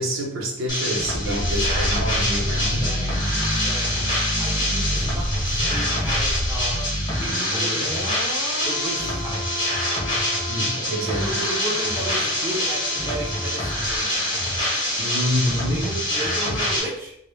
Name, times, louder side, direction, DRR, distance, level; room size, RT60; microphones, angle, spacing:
voice 1, 0.0-3.0 10.5-11.4 15.0-15.9, equal, 90° right, 0 dB, 0.6 m, -27 dB
sound 1, 0.7-16.8, left 1 dB, 20° left, 0.7 m, -25 dB
sound 2, 1.0-15.9 16.2-16.3, equal, 85° left, 0.6 m, -30 dB
voice 2, 1.2-8.3 8.6-9.6 11.0-14.3 15.7-17.2, right 1 dB, 10° right, -4 dB, 0.4 m, -35 dB
2.0 x 2.0 x 3.0 m, 0.74 s
head